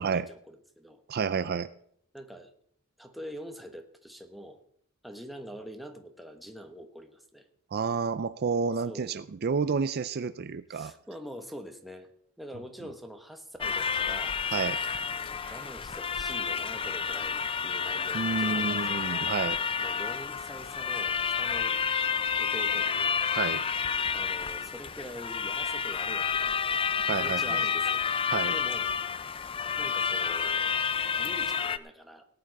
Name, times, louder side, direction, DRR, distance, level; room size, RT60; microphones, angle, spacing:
voice 1, 0.0-1.0 2.1-2.5 3.0-4.6 5.0-7.5 8.8-9.1 10.7-12.1 12.4-14.4 15.5-19.0 19.8-21.8 22.4-23.2 24.1-26.9 27.1-28.0 28.5-28.9 29.8-30.7 31.2-32.2, equal, ahead, 4 dB, 1.2 m, -44 dB
voice 2, 1.1-1.7 7.7-10.9 14.5-14.8 15.4-15.5 18.1-19.6 23.3-23.6 27.1-27.6 28.3-28.5, right 5 dB, 50° right, 13 dB, 0.4 m, -30 dB
sound 1, 13.6-31.8, left 6 dB, 25° left, 0.4 m, -30 dB
18.0 x 8.9 x 4.7 m, 0.67 s
head